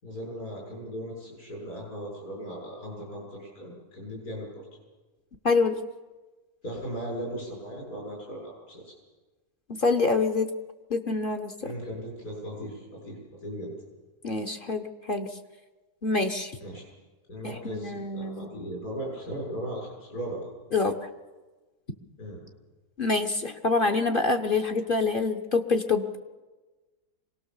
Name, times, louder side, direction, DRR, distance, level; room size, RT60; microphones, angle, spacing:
voice 1, 0.0-4.7 6.6-8.9 11.6-13.7 16.6-16.8 17.3-20.5 22.2-22.5, equal, 75° left, -3 dB, 7.5 m, -37 dB
voice 2, 5.4-5.8 9.8-10.5 10.9-11.7 14.2-15.3 16.0-16.5 17.4-18.5 20.7-21.1 23.0-26.2, left 3 dB, 40° left, 6 dB, 1.1 m, -26 dB
25.0 x 18.5 x 7.2 m, 1.2 s
omnidirectional pair, 1.6 m